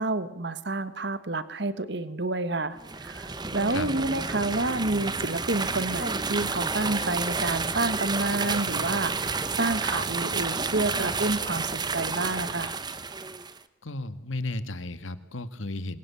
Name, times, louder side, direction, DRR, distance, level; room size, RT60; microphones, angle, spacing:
voice 1, 0.0-12.8, right 2 dB, 60° right, 13 dB, 1.4 m, -29 dB
sound 1, 2.8-13.6, right 4 dB, 20° right, 1.0 m, -30 dB
voice 2, 13.8-16.0, left 2 dB, 85° left, 12 dB, 1.8 m, -34 dB
27.0 x 22.5 x 8.6 m, 0.88 s
head